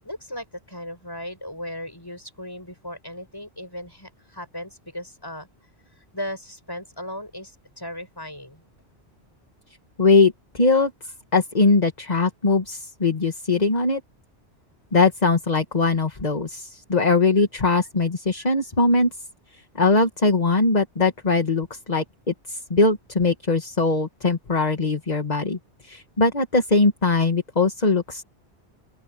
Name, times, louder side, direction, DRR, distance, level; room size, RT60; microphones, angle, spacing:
voice 1, 0.0-5.5 6.0-8.6, equal, 20° left, 7.6 m, -37 dB
voice 2, 10.0-10.9 11.3-14.0 14.9-19.1 19.8-22.0 22.5-25.6 25.8-28.2, left 3 dB, 40° left, 1.9 m, -21 dB
open air
omnidirectional pair, 1.1 m